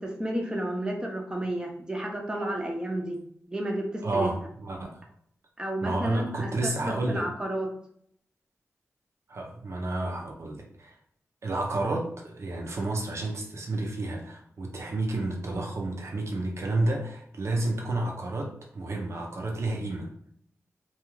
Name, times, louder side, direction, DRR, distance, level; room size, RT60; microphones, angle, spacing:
voice 1, 0.0-3.2 3.5-4.3 5.6-7.7, right 1 dB, 15° right, 1 dB, 0.5 m, -32 dB
voice 2, 4.0-5.0 5.8-7.3 9.3-11.0 11.4-20.1, right 2 dB, 60° right, 1 dB, 0.6 m, -30 dB
2.3 x 2.3 x 3.0 m, 0.67 s
cardioid pair, 70°, 5 cm